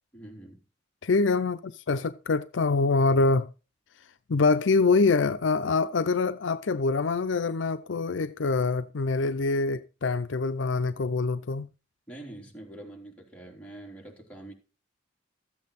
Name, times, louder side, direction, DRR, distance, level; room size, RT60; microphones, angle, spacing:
voice 1, 0.1-0.6 12.1-14.5, right 1 dB, 5° left, 3.4 m, -45 dB
voice 2, 1.0-3.5 4.3-11.7, left 3 dB, 75° left, 0.6 m, -25 dB
14.0 x 8.6 x 4.1 m
head